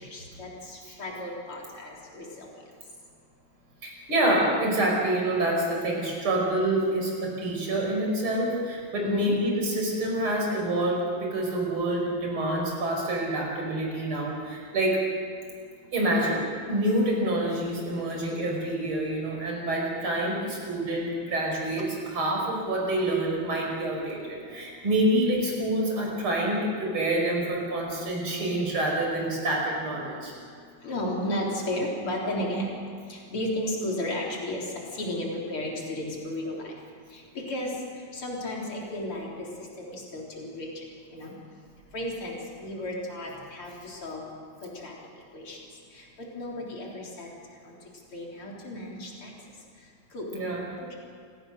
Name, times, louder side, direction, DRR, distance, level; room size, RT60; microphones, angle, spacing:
voice 1, 0.0-2.5 9.0-9.4 30.8-32.8 33.1-34.6 34.9-36.6 37.3-37.7 38.1-39.5 39.8-40.7 41.1-41.3 41.9-44.2 44.6-44.9 45.3-45.6 45.9-46.0 46.3-47.3 48.1-49.3 50.1-50.3, left 1 dB, 90° left, -3 dB, 4.7 m, -33 dB
voice 2, 3.8-15.0 15.9-30.3 50.3-50.6, right 1 dB, 75° right, -1 dB, 6.2 m, -27 dB
28.5 x 18.0 x 6.7 m, 2.3 s
omnidirectional pair, 2.3 m